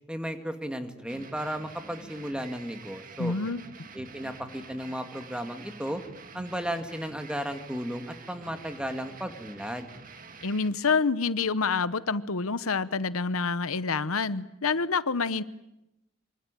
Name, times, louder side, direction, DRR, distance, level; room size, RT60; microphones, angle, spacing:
voice 1, 0.1-3.3 3.9-6.0 6.3-9.9, equal, 5° right, 7 dB, 2.0 m, -34 dB
sound 1, 1.1-10.7, right 4 dB, 40° right, 2.0 m, -48 dB
voice 2, 3.2-3.6 10.4-15.4, left 4 dB, 85° left, 15 dB, 0.9 m, -27 dB
26.0 x 25.0 x 9.1 m, 0.89 s
head